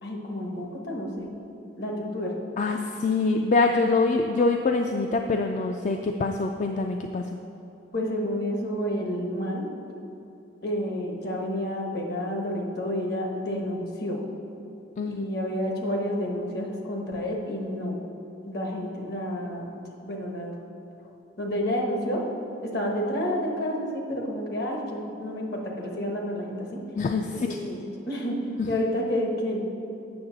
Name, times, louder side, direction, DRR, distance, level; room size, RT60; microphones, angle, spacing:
voice 1, 0.0-1.3 1.8-2.3 7.9-9.7 10.6-14.2 15.0-17.9 18.4-19.7 20.0-20.5 21.0-21.1 21.4-22.2 22.6-26.8 27.3-28.4 28.7-29.6, equal, 65° left, 0 dB, 1.2 m, -30 dB
voice 2, 2.6-7.4 15.0-15.2 26.9-27.6 28.6-28.7, left 3 dB, 45° left, 4 dB, 0.3 m, -25 dB
8.7 x 6.4 x 3.9 m, 2.9 s
head